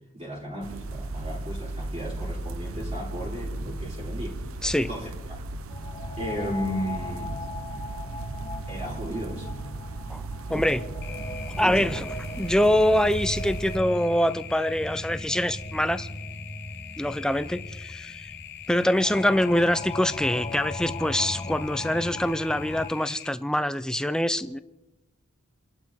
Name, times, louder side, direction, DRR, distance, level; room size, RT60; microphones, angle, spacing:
voice 1, 0.1-4.4 4.9-5.6 6.2-7.4 8.7-9.5 10.5-10.8 11.5-12.0, equal, 30° right, 3.9 m, -35 dB
sound 1, 0.6-13.8, right 2 dB, 80° right, 0.8 m, -36 dB
sound 2, 5.7-22.9, left 2 dB, 25° left, 0.9 m, -37 dB
voice 2, 10.5-10.8 11.6-12.0 12.4-16.1 17.0-18.3 18.7-24.6, left 1 dB, 5° left, 0.5 m, -24 dB
sound 3, 11.0-23.3, left 10 dB, 50° left, 0.9 m, -43 dB
29.5 x 12.0 x 3.7 m
head